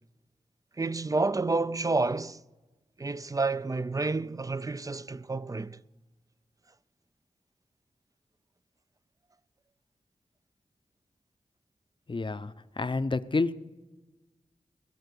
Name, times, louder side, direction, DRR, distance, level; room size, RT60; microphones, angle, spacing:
voice 1, 0.8-2.4 3.0-5.8, right 3 dB, 25° right, 0.5 m, -29 dB
voice 2, 12.1-13.5, left 3 dB, 40° left, 0.7 m, -29 dB
20.5 x 7.6 x 6.8 m
cardioid pair, 50°, 13 cm